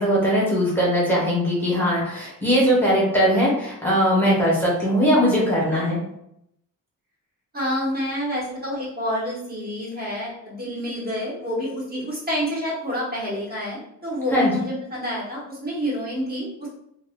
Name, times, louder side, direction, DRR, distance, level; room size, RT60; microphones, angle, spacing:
voice 1, 0.0-6.0 14.3-14.5, equal, 5° left, -6 dB, 1.0 m, -20 dB
voice 2, 7.5-16.7, equal, 30° right, -6 dB, 1.0 m, -28 dB
2.3 x 2.1 x 3.4 m, 0.76 s
cardioid pair, 120°, 34 cm